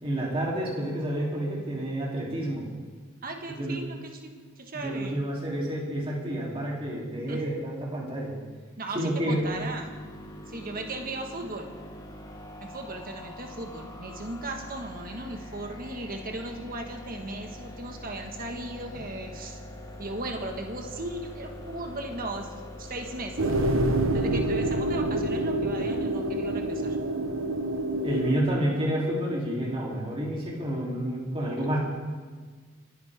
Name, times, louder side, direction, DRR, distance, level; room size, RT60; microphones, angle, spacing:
voice 1, 0.0-2.6 3.5-3.8 4.7-8.3 8.9-9.5 28.0-31.8, right 1 dB, 25° right, -4 dB, 3.2 m, -29 dB
voice 2, 3.2-5.2 7.3-7.4 8.8-9.9 10.5-11.7 12.6-19.6 20.0-22.5 22.8-23.4 24.1-27.0, right 2 dB, 45° right, 3 dB, 1.6 m, -37 dB
sound 1, 9.3-24.0, left 1 dB, 20° left, 1.2 m, -43 dB
sound 2, 23.4-28.4, right 1 dB, 75° right, 1.1 m, -27 dB
28.5 x 10.5 x 3.6 m, 1.5 s
head